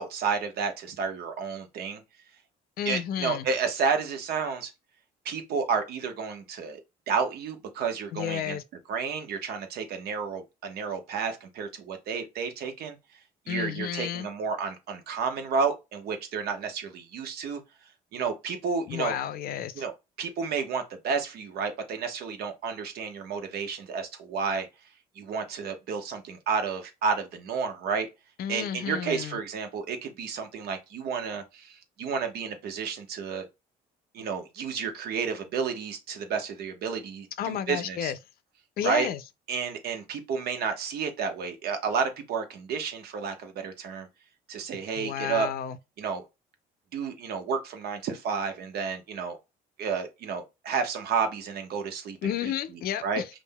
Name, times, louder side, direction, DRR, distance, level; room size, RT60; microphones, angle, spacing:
voice 1, 0.0-2.0 2.8-4.7 5.2-6.8 7.1-8.6 8.9-13.0 13.5-17.6 18.1-19.1 19.7-24.7 25.2-28.1 28.5-33.5 34.1-38.1 38.8-39.1 39.5-44.1 44.5-45.5 46.0-46.2 46.9-49.4 49.8-52.5 53.0-53.2, right 5 dB, 70° right, 1.0 m, -31 dB
voice 2, 2.8-3.5 8.1-8.6 13.5-14.3 18.9-19.8 28.4-29.4 37.4-38.2 38.8-39.2 45.0-45.8 52.2-53.3, left 9 dB, 60° left, 0.4 m, -31 dB
5.3 x 2.6 x 2.2 m
cardioid pair, 110°, 17 cm